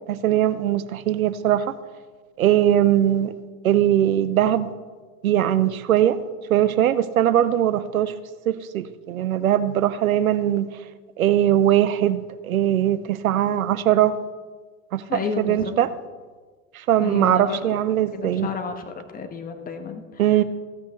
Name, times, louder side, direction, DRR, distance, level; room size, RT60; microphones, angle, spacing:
voice 1, 0.1-1.8 2.4-3.3 3.6-4.7 5.2-6.2 6.5-8.1 8.5-10.7 11.2-14.2 14.9-15.9 16.7-18.5 20.2-20.4, right 11 dB, 85° right, 13 dB, 0.7 m, -20 dB
voice 2, 15.1-15.7 17.0-17.7 18.1-20.4, left 5 dB, 20° left, 6 dB, 1.5 m, -31 dB
15.5 x 6.0 x 7.8 m, 1.4 s
hypercardioid pair, 90°, 41 cm